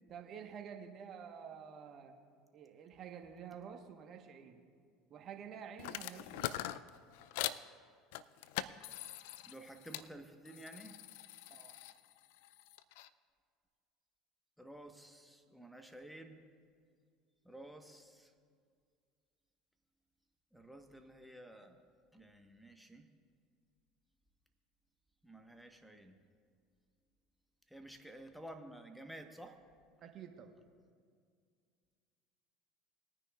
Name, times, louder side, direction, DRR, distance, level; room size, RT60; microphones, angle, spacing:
voice 1, 0.1-2.1 2.5-4.6 5.1-6.6 11.5-11.8 30.0-30.5, right 7 dB, 45° right, 5 dB, 1.2 m, -50 dB
sound 1, 5.8-7.6 8.1-10.1 10.4-13.1, left 14 dB, 70° left, 0.3 m, -43 dB
voice 2, 9.4-11.0 14.6-16.4 17.4-18.3 20.5-21.8 22.1-23.1 25.2-26.2 27.7-29.6, right 1 dB, ahead, 4 dB, 1.2 m, -52 dB
20.5 x 9.7 x 2.4 m, 2.1 s
hypercardioid pair, 75°, 0 cm